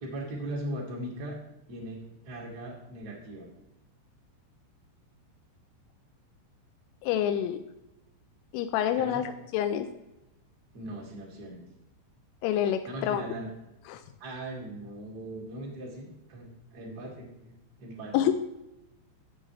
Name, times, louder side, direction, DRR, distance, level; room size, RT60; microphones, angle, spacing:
voice 1, 0.0-1.4 1.7-3.5 9.0-9.2 10.7-11.6 12.9-13.5 14.2-18.1, right 1 dB, 60° right, -3 dB, 1.0 m, -39 dB
voice 2, 7.0-7.6 8.5-9.9 12.4-13.2 13.9-14.0 18.1-18.3, left 10 dB, 85° left, 9 dB, 3.1 m, -27 dB
12.5 x 7.2 x 3.1 m, 0.93 s
omnidirectional pair, 5.6 m